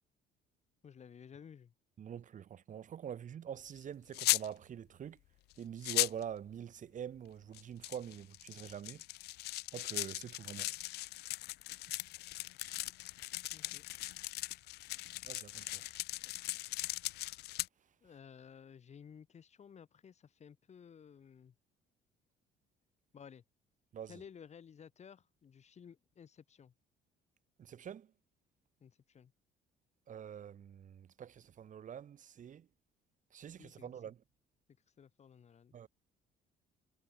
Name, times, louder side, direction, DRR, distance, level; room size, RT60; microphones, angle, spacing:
voice 1, 0.8-1.7 13.5-13.9 18.0-21.5 23.1-23.4 24.1-26.7 28.8-29.3 33.6-33.9 35.0-35.8, left 7 dB, 40° left, 6.2 m, -55 dB
voice 2, 2.0-5.2 5.6-9.0 9.7-10.7 15.2-15.9 16.8-16.9 23.9-24.2 27.6-28.1 30.1-32.7 33.3-34.2 35.7-35.9, right 9 dB, 50° right, 4.1 m, -45 dB
sound 1, 4.1-4.5 5.5-5.6 5.8-6.2 7.5-17.7, left 18 dB, 75° left, 0.6 m, -38 dB
cardioid pair, 110°, 17 cm